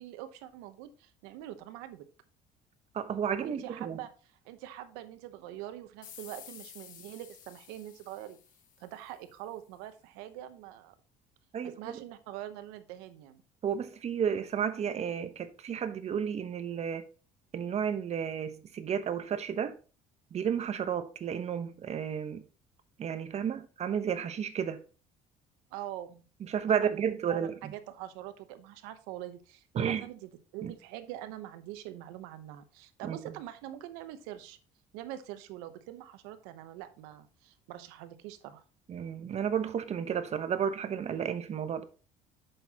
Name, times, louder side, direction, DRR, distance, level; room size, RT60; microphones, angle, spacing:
voice 1, 0.0-2.1 3.4-4.1 4.4-8.4 8.8-10.9 11.6-13.4 25.7-26.3 26.6-34.6 34.9-38.6, right 13 dB, 90° right, 0.9 m, -44 dB
voice 2, 2.9-4.0 11.5-12.0 13.6-17.0 17.5-19.7 20.3-22.4 23.0-24.8 26.5-27.7 29.8-30.0 30.6-30.7 33.0-33.2 38.9-41.8, right 8 dB, 45° right, 1.0 m, -32 dB
sound 1, 6.0-9.3, left 9 dB, 60° left, 1.3 m, -52 dB
7.7 x 6.6 x 2.9 m
supercardioid pair, 95°, 16 cm